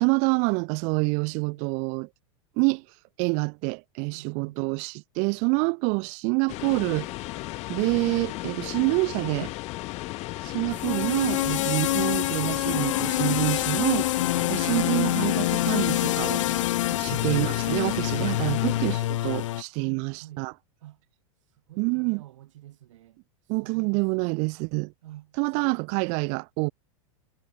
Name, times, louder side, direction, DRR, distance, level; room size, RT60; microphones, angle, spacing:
voice 1, 0.0-2.1 2.6-2.8 3.2-7.1 7.7-9.5 10.4-14.1 14.5-16.4 17.0-20.5 21.8-22.2 23.5-24.9 25.4-26.7, right 37 dB, 45° right, 0.5 m, -27 dB
voice 2, 4.1-4.6 14.3-14.6 16.9-17.1 18.5-18.7 19.6-20.5 20.8-21.1 21.4-24.4 25.0-26.3, right 14 dB, 75° right, 7.1 m, -49 dB
sound 1, 6.5-19.0, left 20 dB, 45° left, 3.0 m, -36 dB
sound 2, 6.6-19.6, left 14 dB, 75° left, 2.4 m, -28 dB
hypercardioid pair, 125°, 16 cm